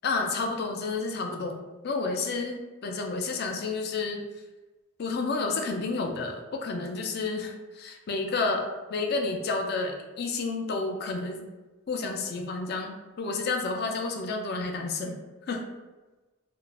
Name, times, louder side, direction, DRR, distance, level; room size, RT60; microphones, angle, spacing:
voice 1, 0.0-1.6 1.8-4.2 5.0-11.5 11.9-15.2 15.5-15.6, left 3 dB, 50° left, 3 dB, 0.4 m, -30 dB
2.4 x 2.0 x 3.2 m, 1.2 s
head